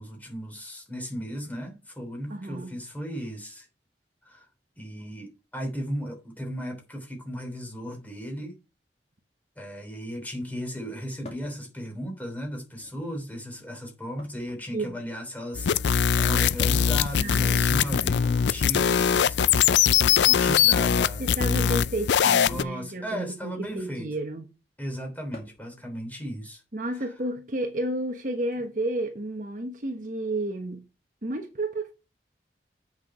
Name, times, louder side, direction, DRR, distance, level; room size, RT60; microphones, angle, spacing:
voice 1, 0.0-3.7 4.2-4.5 4.8-8.6 9.6-19.6 20.2-21.3 22.2-24.1 24.8-26.6 26.9-27.0, equal, 10° left, 3.2 m, -36 dB
voice 2, 2.3-2.7 14.7-15.0 17.2-18.2 21.2-24.4 26.7-30.8 31.2-31.9, right 1 dB, 45° right, 1.2 m, -32 dB
sound 1, 11.2-11.6 12.6-13.1 14.2-15.3 16.6-17.0 18.1-19.2 19.9-20.2 21.7-22.0 23.6-23.9 25.3-25.7 27.2-27.3 28.5-28.6, left 2 dB, 40° left, 2.5 m, -47 dB
sound 2, 15.5-22.6, left 8 dB, 80° left, 0.4 m, -22 dB
8.1 x 6.1 x 4.9 m
head